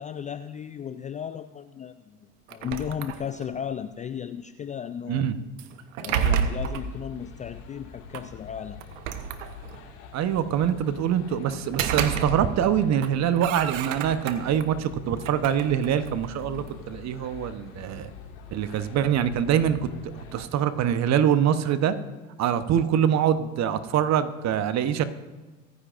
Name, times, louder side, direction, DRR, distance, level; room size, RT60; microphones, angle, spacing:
voice 1, 0.0-5.3 6.0-8.8, left 8 dB, 20° left, 11 dB, 0.3 m, -35 dB
sound 1, 2.5-3.6 5.6-6.9 8.1-8.2 8.8-9.9 11.5-12.7 13.0-14.7 15.1-16.8, right 8 dB, 75° right, 1.1 m, -30 dB
sound 2, 6.2-20.5, left 6 dB, 60° left, 2.2 m, -45 dB
voice 2, 10.1-18.1 18.5-19.8 20.3-22.0 22.4-25.0, right 9 dB, 45° right, 12 dB, 1.0 m, -24 dB
24.0 x 10.0 x 2.6 m, 1.2 s
hypercardioid pair, 85°, 39 cm